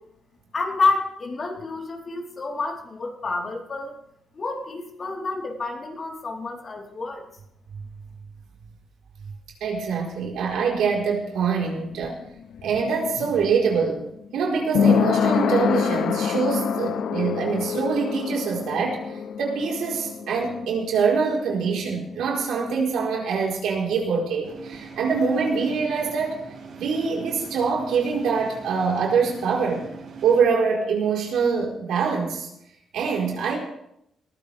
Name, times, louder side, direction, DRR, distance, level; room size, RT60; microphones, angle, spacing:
voice 1, 0.5-3.9 4.3-7.2, left 3 dB, 45° left, 0 dB, 4.1 m, -28 dB
voice 2, 9.6-12.2 12.6-14.0 14.3-26.4 26.8-29.9 30.2-32.5 32.9-33.6, right 5 dB, 85° right, -1 dB, 4.5 m, -24 dB
sound 1, 11.7-23.2 23.4-23.5, left 7 dB, 75° left, 0.8 m, -27 dB
sound 2, 24.4-30.4, right 5 dB, 65° right, 6.7 m, -42 dB
21.0 x 15.0 x 3.6 m, 0.77 s
cardioid pair, 90°, 0 cm